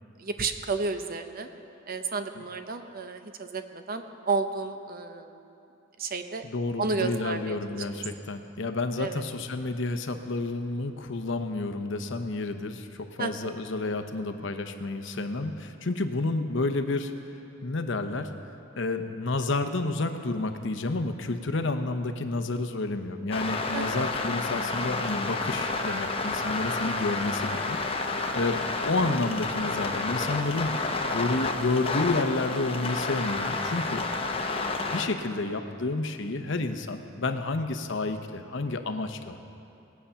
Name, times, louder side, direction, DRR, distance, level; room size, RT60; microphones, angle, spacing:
voice 1, 0.2-1.5 1.9-5.5 6.0-6.4 6.8-7.8 9.0-9.2 13.2-13.5 23.7-24.1 29.1-29.3 34.5-34.9, right 4 dB, 45° right, 7 dB, 0.8 m, -32 dB
voice 2, 6.4-17.1 17.6-18.3 18.8-27.8 28.3-30.8 31.1-34.4 34.7-39.6, left 2 dB, 65° left, 7 dB, 0.8 m, -30 dB
sound 1, 23.3-35.1, left 3 dB, 30° left, 0.8 m, -30 dB
19.5 x 8.4 x 5.7 m, 2.8 s
head